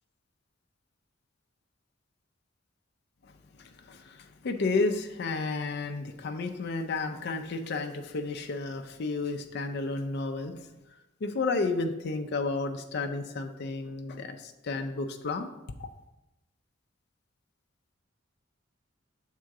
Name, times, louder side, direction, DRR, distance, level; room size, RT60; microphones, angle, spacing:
voice 1, 3.6-10.6 11.2-15.5 15.8-15.9, left 3 dB, 55° left, 5 dB, 0.4 m, -32 dB
6.4 x 3.7 x 4.7 m, 0.99 s
head